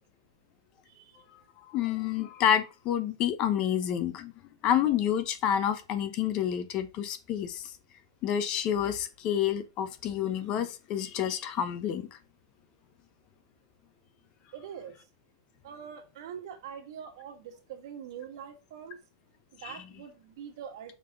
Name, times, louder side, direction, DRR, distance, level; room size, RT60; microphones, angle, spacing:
voice 1, 0.8-1.2 14.5-15.0 15.6-19.0 19.5-21.0, right 8 dB, 60° right, 1.7 m, -44 dB
voice 2, 1.7-4.3 4.6-7.7 8.2-12.1 19.6-19.8, left 9 dB, 35° left, 0.9 m, -29 dB
6.4 x 3.8 x 4.9 m
supercardioid pair, 145°, 3 cm